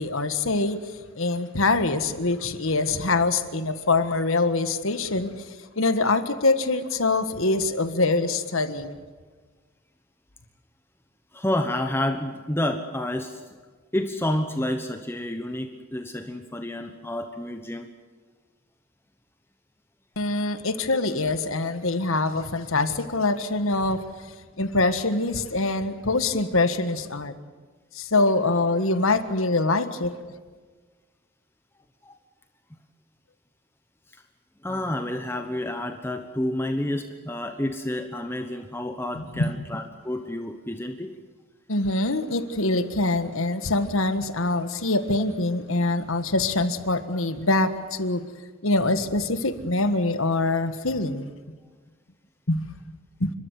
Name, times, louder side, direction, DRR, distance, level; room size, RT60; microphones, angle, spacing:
voice 1, 0.0-9.0 20.2-24.0 24.6-27.3 27.9-30.2 39.1-39.5 41.7-48.2 48.6-51.3 52.5-52.7 53.2-53.3, left 2 dB, 75° left, 1.6 m, -24 dB
voice 2, 11.3-13.4 13.9-17.9 32.0-32.1 34.1-34.2 34.6-41.1, left 1 dB, 10° left, 1.0 m, -29 dB
29.5 x 13.0 x 9.6 m
head